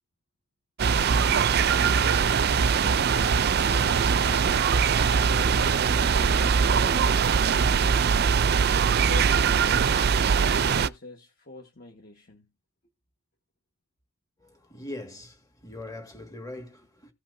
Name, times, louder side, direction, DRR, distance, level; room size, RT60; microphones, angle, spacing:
sound 1, 0.8-10.9, right 6 dB, 45° right, 0.4 m, -22 dB
voice 1, 0.9-4.6 5.2-7.2 9.0-9.8 10.4-12.5, left 2 dB, 40° left, 1.4 m, -45 dB
voice 2, 14.4-17.1, left 1 dB, 15° left, 1.7 m, -41 dB
16.0 x 5.8 x 2.6 m
head